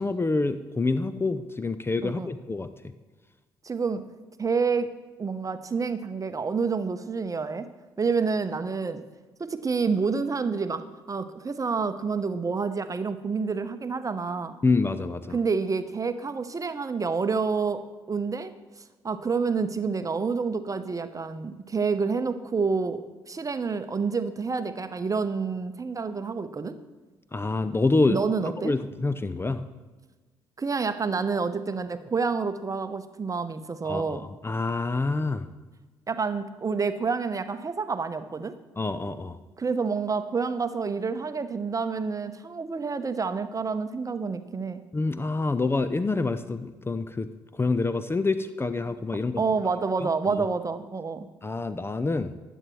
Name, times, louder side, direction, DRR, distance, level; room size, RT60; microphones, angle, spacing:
voice 1, 0.0-2.7 14.6-15.4 27.3-28.2 28.6-29.6 33.8-35.5 38.8-39.4 44.9-49.4 50.0-50.1 50.4-50.5 51.4-52.4, left 3 dB, 20° left, 12 dB, 0.6 m, -27 dB
voice 2, 3.6-4.0 4.4-4.9 5.2-7.7 8.0-9.0 9.4-14.5 15.3-17.8 18.1-18.5 19.0-23.0 23.3-26.8 28.1-28.7 30.6-34.2 36.1-38.5 39.6-44.8 49.4-51.3, right 5 dB, 30° right, 10 dB, 0.9 m, -28 dB
19.5 x 9.1 x 3.2 m, 1.3 s
figure-of-eight pair, 45°, 12 cm